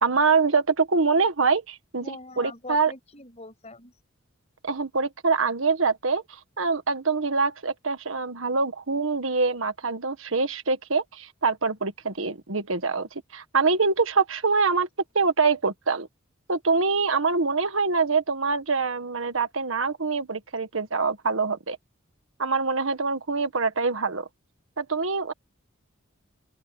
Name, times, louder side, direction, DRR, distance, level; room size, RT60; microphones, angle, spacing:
voice 1, 0.0-2.9 4.6-6.2 6.6-14.9 15.1-16.1 16.5-21.8 22.4-24.3 24.8-25.3, right 4 dB, 80° right, 1.5 m, -24 dB
voice 2, 2.0-3.9, left 2 dB, 35° left, 7.1 m, -42 dB
open air
head